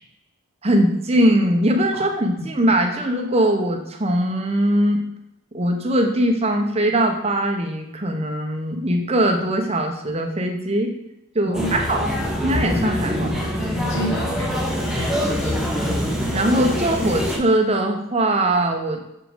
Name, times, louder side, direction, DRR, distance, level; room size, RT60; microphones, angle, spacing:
voice 1, 0.6-5.0 5.5-10.9 11.3-12.1 12.4-13.3 16.3-19.0, right 1 dB, 25° right, 4 dB, 0.8 m, -21 dB
voice 2, 11.4-11.8 13.8-16.0, equal, 55° left, -1 dB, 1.5 m, -31 dB
sound 1, 11.5-17.4, equal, ahead, 0.9 m, -24 dB
6.6 x 5.1 x 5.1 m, 0.85 s
head